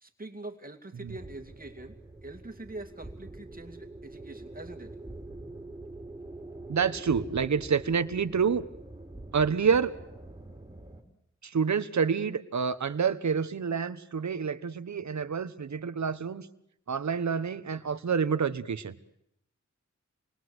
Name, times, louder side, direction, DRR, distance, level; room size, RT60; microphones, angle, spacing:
voice 1, 0.0-5.0, right 2 dB, 30° right, 5 dB, 2.6 m, -44 dB
sound 1, 1.1-11.0, right 2 dB, 15° right, 4.0 m, -45 dB
voice 2, 6.7-8.6 9.3-9.9 11.4-16.5 16.9-18.9, right 6 dB, 70° right, 13 dB, 1.2 m, -28 dB
28.0 x 21.5 x 8.0 m, 0.78 s
wide cardioid pair, 70°, 29 cm